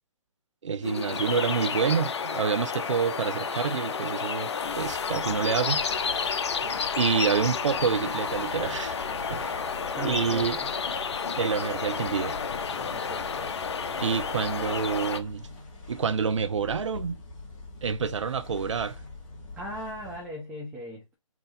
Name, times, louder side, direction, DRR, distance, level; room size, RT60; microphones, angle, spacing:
voice 1, 0.6-4.5 4.8-5.8 6.2-6.3 6.9-9.0 9.3-9.6 10.0-10.6 11.4-12.4 14.0-15.5 15.9-17.2 17.8-19.0, right 6 dB, 65° right, 0.7 m, -28 dB
sound 1, 0.8-15.2, left 6 dB, 55° left, 0.7 m, -31 dB
sound 2, 4.6-20.4, left 2 dB, 25° left, 2.1 m, -44 dB
voice 2, 10.0-10.7 12.8-13.5 19.6-21.1, equal, 5° right, 0.9 m, -39 dB
4.4 x 2.4 x 3.9 m
figure-of-eight pair, 140°, 17 cm